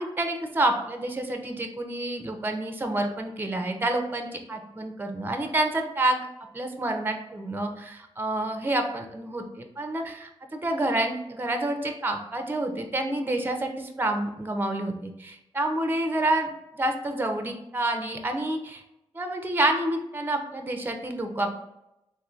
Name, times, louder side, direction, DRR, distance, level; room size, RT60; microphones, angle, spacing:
voice 1, 0.0-6.3 6.5-16.5 16.8-18.8 19.1-21.5, right 1 dB, 20° right, 5 dB, 0.5 m, -28 dB
3.6 x 2.6 x 2.4 m, 0.89 s
cardioid pair, 50°, 11 cm